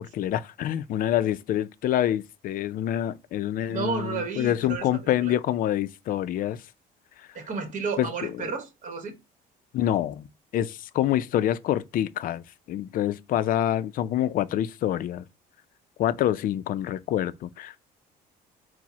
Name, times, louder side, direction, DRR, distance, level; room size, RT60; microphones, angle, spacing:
voice 1, 0.0-6.6 7.2-7.3 8.0-8.5 9.7-10.3 10.5-15.2 16.0-17.9, left 11 dB, 55° left, 0.4 m, -27 dB
voice 2, 3.7-5.3 7.3-9.2, right 5 dB, 50° right, 1.1 m, -32 dB
4.6 x 2.0 x 4.0 m
cardioid pair, 110°, 17 cm